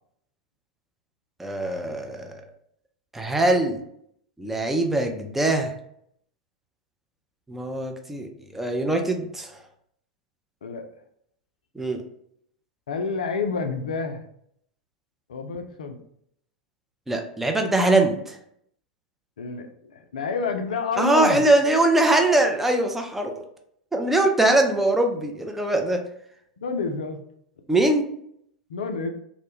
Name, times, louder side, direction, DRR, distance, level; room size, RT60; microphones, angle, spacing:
voice 1, 1.4-2.4 3.1-3.8 4.4-5.7 7.5-9.6 11.8-12.0 17.1-18.4 21.0-23.3 23.9-26.0 27.7-28.1, right 2 dB, 5° right, 3 dB, 0.4 m, -22 dB
voice 2, 12.9-14.2 15.3-16.0 19.4-21.4 26.6-27.2 28.7-29.1, left 4 dB, 70° left, 5 dB, 0.3 m, -29 dB
2.1 x 2.0 x 3.0 m, 0.70 s
figure-of-eight pair, 90°, 4 cm